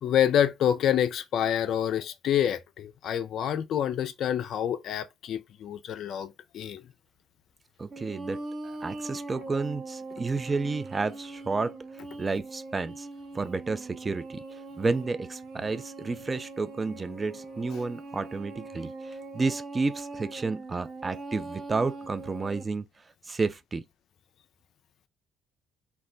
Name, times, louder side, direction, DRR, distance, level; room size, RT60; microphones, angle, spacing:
voice 1, 0.0-6.8, left 10 dB, 60° left, 0.3 m, -27 dB
voice 2, 7.8-11.8 12.2-13.1 13.3-14.4 14.8-22.9 23.2-23.8, right 3 dB, 30° right, 0.4 m, -31 dB
sound 1, 7.9-22.6, right 2 dB, 50° right, 0.7 m, -41 dB
2.2 x 2.1 x 3.7 m
hypercardioid pair, 50°, 0 cm